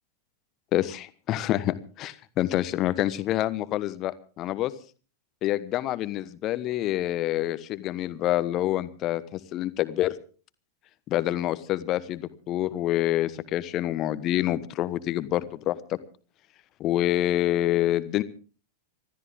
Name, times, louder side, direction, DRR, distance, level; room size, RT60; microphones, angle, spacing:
voice 1, 0.7-4.7 5.4-10.1 11.1-16.0 16.8-18.2, left 14 dB, 35° left, 14 dB, 1.2 m, -27 dB
26.5 x 13.5 x 3.5 m, 0.38 s
figure-of-eight pair, 90°, 0 cm